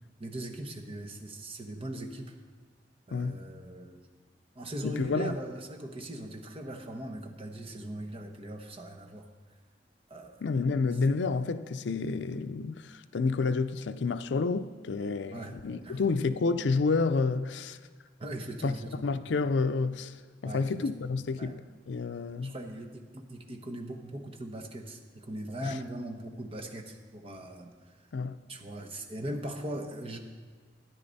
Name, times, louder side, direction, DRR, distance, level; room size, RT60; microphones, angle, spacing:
voice 1, 0.2-2.3 3.1-4.0 4.5-9.2 10.1-10.4 15.3-16.0 18.2-19.0 20.4-20.7 21.4-21.6 22.4-27.7 28.5-30.2, right 1 dB, 30° right, 1.0 m, -40 dB
voice 2, 3.1-3.4 4.8-5.4 10.4-17.8 18.6-18.7 19.0-20.1 20.4-22.5 25.6-25.7 28.1-28.4, left 4 dB, 80° left, 0.5 m, -29 dB
13.5 x 10.0 x 4.1 m
head